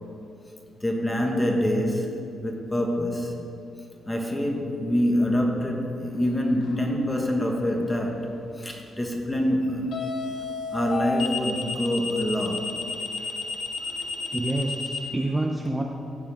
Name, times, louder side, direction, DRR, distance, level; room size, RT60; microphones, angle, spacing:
voice 1, 0.8-3.3 4.0-8.3 8.6-10.0 10.7-12.8 13.2-13.3 13.8-14.4 15.2-15.3, equal, 10° left, 1 dB, 1.5 m, -26 dB
sound 1, 6.6-6.9 9.9-15.0, left 4 dB, 70° left, 1.4 m, -31 dB
voice 2, 14.3-15.8, right 1 dB, 10° right, 0 dB, 0.7 m, -27 dB
16.5 x 7.4 x 3.6 m, 2.8 s
cardioid pair, 115°, 0 cm